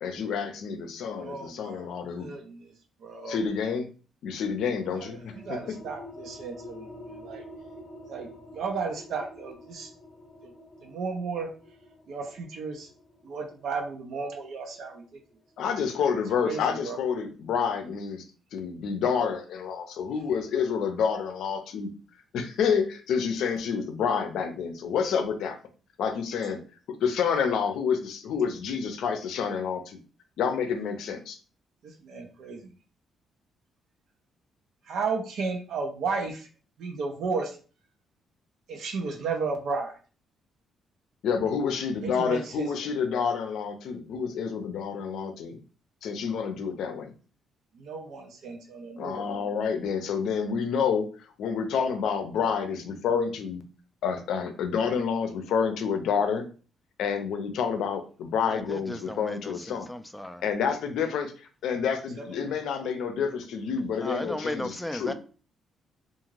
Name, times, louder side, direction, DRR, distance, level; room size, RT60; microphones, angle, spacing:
voice 1, 0.0-2.3 3.3-3.9 4.2-5.8 15.6-18.2 18.5-21.9 22.3-25.6 26.0-26.6 27.0-30.0 30.4-31.4 41.2-45.6 46.0-47.1 49.0-51.1 51.4-53.6 54.0-56.4 57.0-59.9 60.4-61.3 61.6-65.1, left 6 dB, 75° left, 0.5 m, -28 dB
voice 2, 1.2-1.9 2.2-2.7 3.0-3.4 4.9-5.1 5.4-6.9 7.2-7.4 8.1-9.9 10.4-10.5 10.8-11.5 12.1-12.9 13.2-15.0 16.4-17.0 32.0-32.7 34.9-36.5 36.8-37.6 38.7-40.0 42.0-42.7 47.8-49.3 62.2-62.3, right 4 dB, 75° right, 0.6 m, -33 dB
sound 1, 4.7-16.0, left 1 dB, 35° left, 0.8 m, -48 dB
voice 3, 58.5-60.4 64.0-65.1, left 1 dB, 5° left, 0.3 m, -35 dB
2.5 x 2.4 x 3.1 m
cardioid pair, 90°, 0 cm